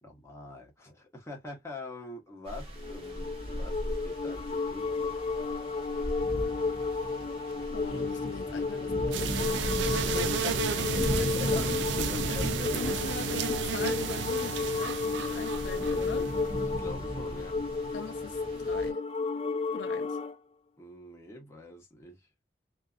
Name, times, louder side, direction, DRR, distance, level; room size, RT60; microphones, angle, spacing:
voice 1, 0.0-5.3 10.0-10.6 11.3-11.7 12.0-13.2 16.6-17.6 20.8-22.3, left 2 dB, 15° left, 0.9 m, -44 dB
sound 1, 2.5-18.9, equal, 35° right, 0.9 m, -37 dB
sound 2, 2.8-20.3, left 4 dB, 35° left, 0.4 m, -33 dB
voice 2, 7.7-10.2 10.5-16.3 17.9-19.0 19.7-20.2, left 5 dB, 90° left, 0.5 m, -41 dB
sound 3, 9.1-16.7, right 6 dB, 80° right, 0.4 m, -33 dB
2.6 x 2.5 x 2.4 m
head